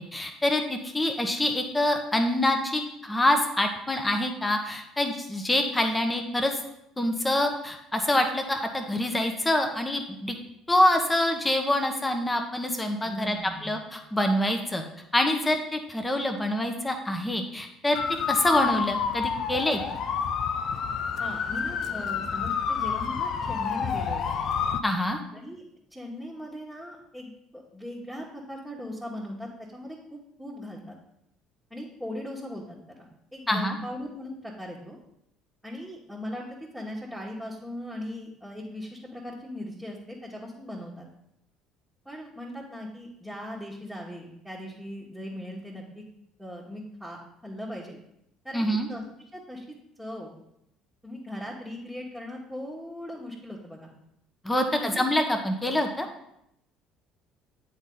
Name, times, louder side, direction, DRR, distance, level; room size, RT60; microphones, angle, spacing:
voice 1, 0.0-6.5 7.0-10.3 10.7-14.8 15.1-18.0 18.3-19.8 24.8-25.2 33.5-33.8 48.5-48.9 54.4-56.1, left 1 dB, 15° left, 5 dB, 0.9 m, -26 dB
voice 2, 13.0-13.7 21.2-24.2 25.3-25.6 25.9-31.0 31.7-35.0 35.6-41.1 42.0-46.0 46.4-48.0 48.4-49.0 49.3-49.6 50.0-50.3 51.0-53.9 54.5-55.1, left 1 dB, ahead, -5 dB, 1.4 m, -39 dB
sound 1, 17.9-24.8, left 6 dB, 50° left, 0.4 m, -29 dB
8.8 x 4.1 x 3.8 m, 0.78 s
figure-of-eight pair, 55°, 0 cm